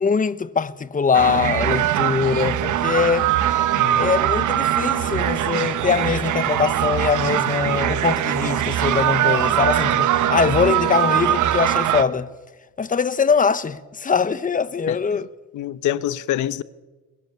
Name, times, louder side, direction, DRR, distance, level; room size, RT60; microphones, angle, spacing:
voice 1, 0.0-3.3 4.0-12.3 12.8-15.3, left 5 dB, 25° left, 1.1 m, -22 dB
sound 1, 1.1-12.0, right 12 dB, 80° right, 1.3 m, -21 dB
voice 2, 3.7-4.1 14.9-15.2 15.5-16.6, left 12 dB, 75° left, 1.0 m, -26 dB
24.0 x 21.5 x 7.0 m
cardioid pair, 90°, 30 cm